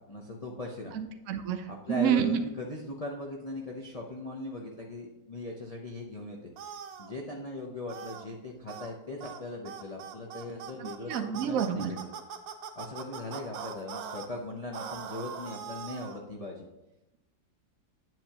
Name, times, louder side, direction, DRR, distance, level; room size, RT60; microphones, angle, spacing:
voice 1, 0.1-0.9 1.7-6.5 7.0-12.1 12.8-16.7, left 2 dB, 75° left, -2 dB, 0.3 m, -39 dB
voice 2, 0.9-2.4 10.8-11.9, right 9 dB, 65° right, 6 dB, 0.8 m, -29 dB
sound 1, 6.6-7.1 7.9-8.3 8.7-8.9 9.2-9.4 9.7-14.3 14.7-16.2, right 7 dB, 80° right, 1.4 m, -41 dB
9.2 x 7.7 x 2.9 m, 0.92 s
omnidirectional pair, 2.0 m